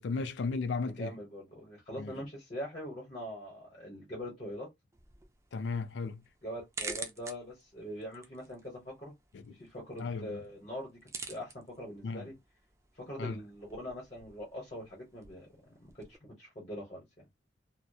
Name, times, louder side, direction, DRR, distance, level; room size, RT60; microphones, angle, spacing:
voice 1, 0.0-1.1 2.0-2.1 5.5-6.2 9.3-9.6 10.0-10.4 12.0-12.3 13.2-13.4, left 4 dB, 80° left, 0.4 m, -35 dB
voice 2, 0.8-4.7 6.4-9.1 9.5-11.0 11.3-12.3 12.9-15.5 16.1-17.2, equal, 35° left, 0.9 m, -42 dB
sound 1, 4.9-16.2, right 4 dB, 15° right, 0.3 m, -49 dB
2.8 x 2.0 x 2.2 m
head